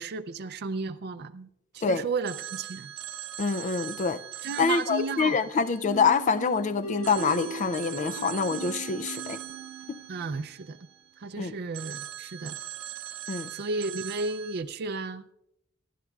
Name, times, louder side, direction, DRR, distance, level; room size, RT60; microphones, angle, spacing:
voice 1, 0.0-1.5 1.7-2.9 4.4-5.5 10.1-10.8 11.2-12.6 13.5-15.3, right 4 dB, 50° right, 0.5 m, -33 dB
Telephone, 2.3-6.5 7.0-11.3 11.7-14.6, right 11 dB, 65° right, 0.9 m, -41 dB
voice 2, 3.4-4.2 4.6-9.4 9.9-10.0 11.4-11.5 13.3-13.5, left 5 dB, 35° left, 0.4 m, -26 dB
sound 1, 5.8-10.5, right 5 dB, 85° left, 3.8 m, -39 dB
28.0 x 11.0 x 2.3 m
head